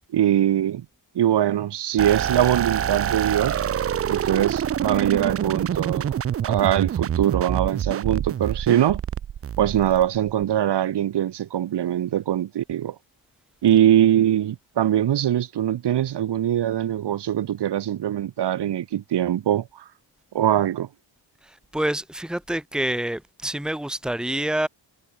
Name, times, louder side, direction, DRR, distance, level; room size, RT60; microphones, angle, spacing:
voice 1, 0.1-0.8 1.1-3.6 4.1-6.1 6.4-9.0 9.6-12.9 13.6-19.7 20.3-20.9, right 11 dB, 60° right, 3.1 m, -22 dB
sound 1, 2.0-10.4, right 9 dB, 35° right, 0.5 m, -26 dB
voice 2, 21.4-24.7, right 1 dB, ahead, 2.4 m, -27 dB
wide cardioid pair, 175°, 45 cm